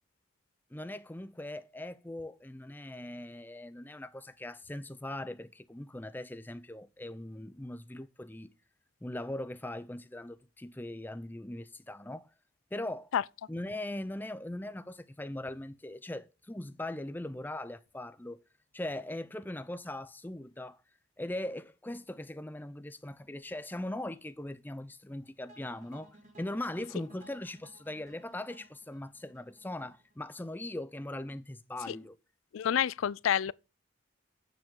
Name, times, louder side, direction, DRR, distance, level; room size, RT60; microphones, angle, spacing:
voice 1, 0.7-8.5 9.0-12.3 12.7-13.1 13.5-18.4 18.7-20.8 21.2-32.2, left 1 dB, 10° left, 0.5 m, -40 dB
sound 1, 25.5-30.6, right 1 dB, 35° right, 4.6 m, -58 dB
voice 2, 32.5-33.5, left 9 dB, 85° left, 0.4 m, -28 dB
9.2 x 7.2 x 3.7 m
head